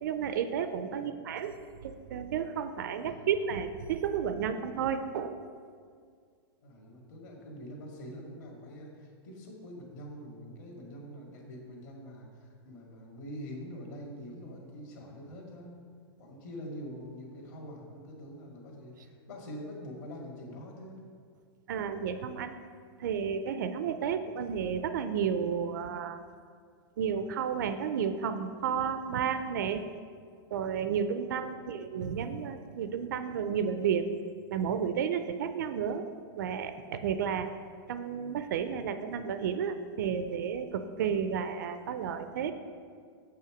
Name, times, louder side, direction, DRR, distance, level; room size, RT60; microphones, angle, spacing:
voice 1, 0.0-5.4 21.7-22.6 23.0-26.2 27.0-29.9 30.5-34.1 34.5-36.1 36.4-37.5 37.9-42.5, right 7 dB, 45° right, 10 dB, 0.4 m, -32 dB
voice 2, 6.6-15.8 16.2-21.0 31.4-31.7, equal, 45° left, -1 dB, 1.9 m, -45 dB
7.4 x 5.7 x 5.9 m, 2.1 s
supercardioid pair, 175°, 14 cm